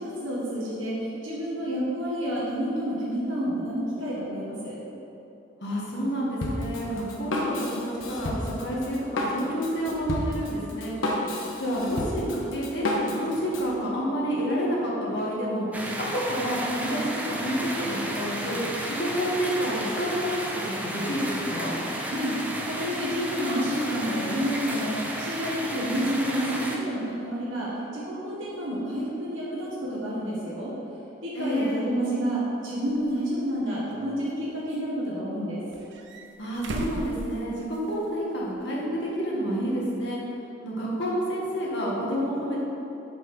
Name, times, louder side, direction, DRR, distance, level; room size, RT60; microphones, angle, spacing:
voice 1, 0.0-4.8 22.0-22.3 22.6-30.7 31.2-35.6, equal, 85° right, -7 dB, 1.3 m, -29 dB
voice 2, 5.6-10.9 11.6-12.9 13.1-15.7 16.0-17.0 17.3-18.6 18.9-21.7 31.3-31.8 36.4-40.2 40.6-42.6, equal, 60° left, -5 dB, 1.4 m, -29 dB
Drum kit, 6.4-13.7, left 1 dB, 85° left, 0.9 m, -31 dB
sound 1, 15.7-26.8, right 1 dB, 10° right, 0.4 m, -33 dB
sound 2, 32.9-33.0 33.9-34.8 35.7-38.1 38.4-38.5 40.0-40.1, right 2 dB, 65° right, 0.5 m, -38 dB
6.0 x 3.6 x 5.9 m, 3.0 s
head